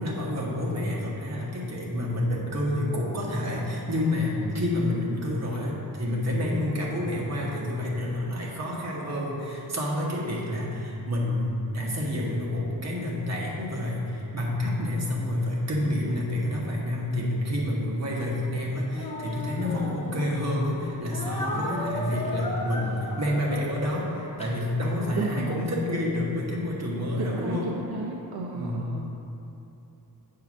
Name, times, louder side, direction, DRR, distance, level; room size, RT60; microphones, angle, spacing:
voice 1, 0.0-27.7 28.5-28.9, left 1 dB, 45° right, -4 dB, 1.2 m, -28 dB
voice 2, 8.3-9.2 10.0-10.5 15.8-16.1 21.5-22.3 25.1-25.7 27.2-29.1, right 3 dB, 85° right, -1 dB, 0.6 m, -35 dB
Speech, 18.9-20.5 21.1-25.1, left 1 dB, 15° left, 0.9 m, -35 dB
7.8 x 2.8 x 6.0 m, 2.8 s
wide cardioid pair, 120°, 38 cm